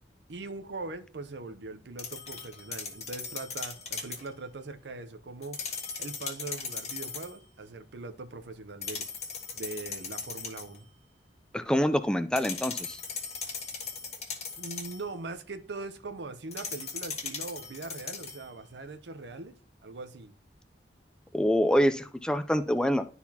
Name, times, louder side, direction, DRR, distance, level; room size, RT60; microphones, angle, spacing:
voice 1, 0.3-5.6 6.0-9.1 9.5-10.8 14.6-19.6 19.8-20.3, right 3 dB, 75° right, 9 dB, 0.7 m, -41 dB
sound 1, 2.0-4.3 5.4-7.4 8.8-10.8 12.4-15.1 16.5-18.5, left 5 dB, 40° left, 1.4 m, -38 dB
voice 2, 11.5-13.0 21.3-23.0, equal, 5° left, 11 dB, 0.4 m, -26 dB
11.5 x 4.1 x 2.8 m, 0.41 s
head